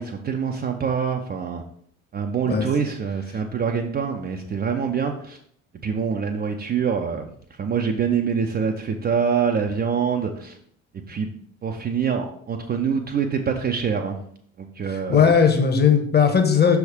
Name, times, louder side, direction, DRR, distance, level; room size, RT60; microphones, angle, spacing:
voice 1, 0.0-1.6 2.1-5.4 5.8-7.3 7.6-10.6 11.1-11.3 11.6-14.2 14.6-15.2, right 6 dB, 25° right, 3 dB, 0.6 m, -25 dB
voice 2, 14.9-16.8, left 6 dB, 25° left, 6 dB, 1.1 m, -18 dB
6.1 x 3.6 x 4.9 m, 0.63 s
figure-of-eight pair, 55°, 41 cm